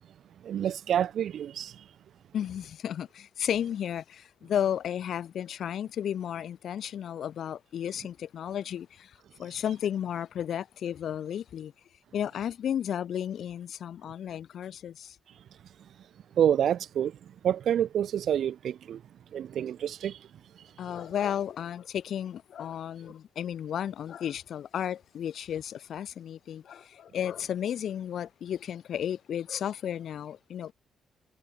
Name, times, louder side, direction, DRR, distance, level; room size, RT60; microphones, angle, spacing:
voice 1, 0.5-1.7 16.4-17.1 17.4-19.0 19.3-20.1, right 9 dB, 65° right, 3.8 m, -27 dB
voice 2, 2.3-11.7 12.1-15.2 20.8-30.7, left 9 dB, 65° left, 7.8 m, -33 dB
cardioid pair, 90°, 0 cm